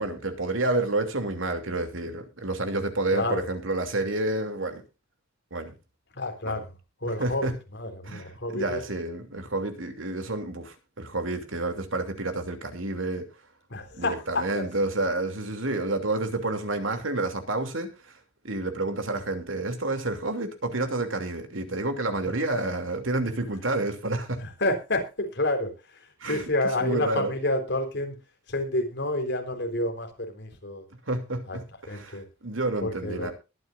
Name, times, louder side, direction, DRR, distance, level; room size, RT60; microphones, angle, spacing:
voice 1, 0.0-4.8 5.5-5.7 6.4-6.6 7.0-7.5 8.0-13.3 13.9-18.2 18.4-24.4 26.2-27.3 31.1-33.3, right 2 dB, 80° right, 2.9 m, -29 dB
voice 2, 3.1-3.5 6.1-6.6 7.0-8.8 13.7-14.7 22.3-22.4 24.4-28.2 28.5-30.8 31.5-31.6 31.9-32.2 32.8-33.3, left 1 dB, 60° left, 3.9 m, -29 dB
22.0 x 9.5 x 2.6 m
head